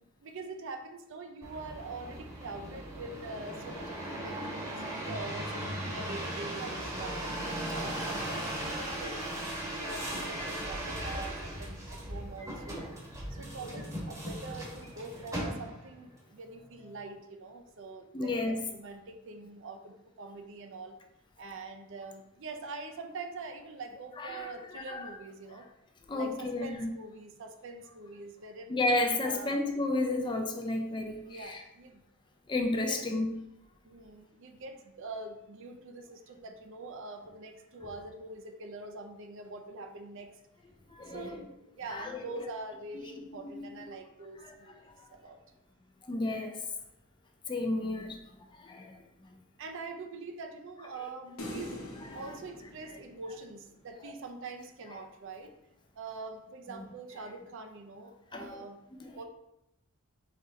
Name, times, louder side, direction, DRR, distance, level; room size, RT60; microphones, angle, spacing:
voice 1, 0.2-7.3 7.7-12.8 13.3-21.0 21.4-25.6 26.1-28.7 29.2-29.6 31.2-32.0 32.9-33.0 33.8-40.3 41.1-45.4 47.8-47.9 49.6-51.9 52.1-55.5 56.0-58.8 59.1-59.2, right 3 dB, 60° right, 6 dB, 0.5 m, -44 dB
sound 1, 1.4-16.0 16.6-17.1, right 1 dB, 15° right, 1.0 m, -38 dB
voice 2, 18.1-18.6 24.2-25.1 25.5-25.6 26.1-26.9 28.7-31.6 32.5-33.3 40.9-41.4 41.9-42.4 42.9-43.0 43.4-43.7 44.4-44.5 46.0-46.7 47.5-48.2 48.6-49.0 54.0-54.1 58.3-58.6 59.0-59.2, left 2 dB, 20° left, 4 dB, 0.4 m, -32 dB
sound 2, 51.4-53.8, left 1 dB, 85° left, 0.9 m, -44 dB
4.1 x 3.1 x 3.6 m, 0.86 s
head